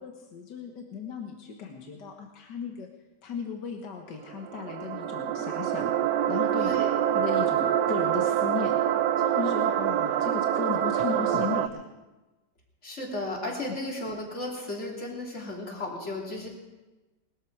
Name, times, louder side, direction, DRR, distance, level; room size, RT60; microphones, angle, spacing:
voice 1, 0.0-2.9 3.2-5.9 6.3-6.7 7.1-8.8 9.2-11.9, left 6 dB, 80° left, 2 dB, 2.0 m, -36 dB
sound 1, 4.2-11.7, right 10 dB, 75° right, 1.3 m, -26 dB
voice 2, 6.6-6.9 12.8-16.5, left 1 dB, 40° left, -2 dB, 3.4 m, -34 dB
20.5 x 13.0 x 4.8 m, 1.1 s
omnidirectional pair, 1.9 m